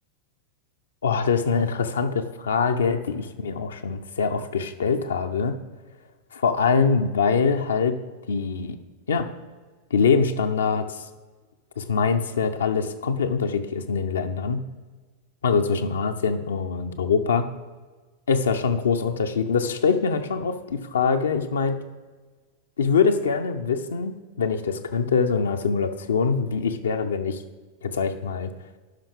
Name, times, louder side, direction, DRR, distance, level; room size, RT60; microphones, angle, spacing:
voice 1, 1.0-5.6 6.3-8.0 8.3-8.8 9.1-9.3 9.9-11.0 11.8-14.6 15.4-17.5 18.3-21.8 22.8-27.4 27.8-28.5, left 5 dB, 70° left, 6 dB, 0.6 m, -24 dB
11.5 x 5.5 x 3.5 m, 1.3 s
figure-of-eight pair, 90°, 0 cm